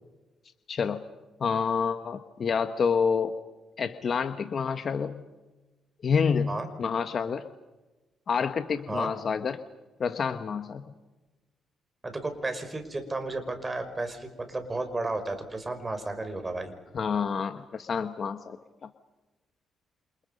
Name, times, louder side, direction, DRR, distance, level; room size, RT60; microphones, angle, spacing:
voice 1, 0.7-1.0 1.4-3.3 3.8-5.2 6.0-7.4 8.3-9.6 10.0-10.8 16.9-18.6, left 6 dB, 50° left, 8 dB, 1.3 m, -28 dB
voice 2, 12.0-16.7, right 2 dB, 20° right, 7 dB, 5.4 m, -33 dB
28.5 x 28.5 x 5.4 m, 1.1 s
cardioid pair, 90°, 0 cm